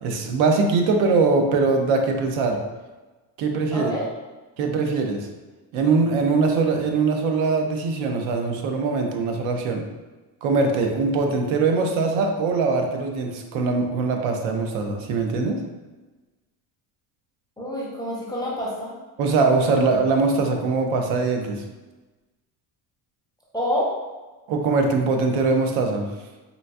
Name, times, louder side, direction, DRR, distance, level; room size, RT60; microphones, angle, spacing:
voice 1, 0.0-2.6 3.4-3.9 4.6-5.3 5.7-9.9 10.4-15.6 19.2-21.6 24.5-26.1, right 4 dB, 70° right, 4 dB, 0.6 m, -22 dB
voice 2, 3.7-4.1 17.6-18.9 23.5-23.9, equal, 10° left, -7 dB, 0.4 m, -27 dB
3.9 x 2.4 x 2.2 m, 1.2 s
cardioid pair, 125°, 50 cm